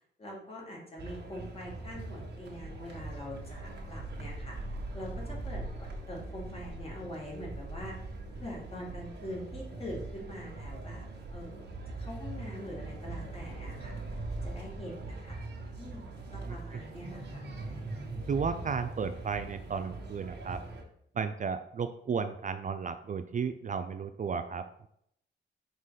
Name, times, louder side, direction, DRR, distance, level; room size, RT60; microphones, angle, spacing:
voice 1, 0.2-8.0 8.4-15.4 15.8-17.5, left 1 dB, 30° left, -3 dB, 2.3 m, -44 dB
sound 1, 1.0-20.8, right 2 dB, 60° right, 1.4 m, -41 dB
voice 2, 16.4-16.8 18.3-20.6 21.1-24.9, right 6 dB, 40° right, 9 dB, 0.4 m, -34 dB
5.6 x 3.9 x 4.9 m, 0.71 s
wide cardioid pair, 110°, 19 cm